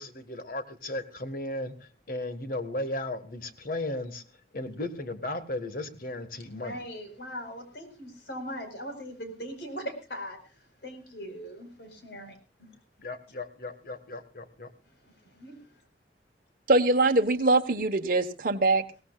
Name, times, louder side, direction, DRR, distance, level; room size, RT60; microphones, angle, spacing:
voice 1, 0.0-4.2 4.5-6.8 13.0-14.7, left 1 dB, 55° left, 10 dB, 1.6 m, -35 dB
voice 2, 6.5-10.5 10.8-12.7 15.0-15.6, equal, 70° left, 6 dB, 4.6 m, -40 dB
voice 3, 16.7-19.0, right 2 dB, 50° right, 4 dB, 1.2 m, -23 dB
22.5 x 17.5 x 2.4 m, 0.32 s
head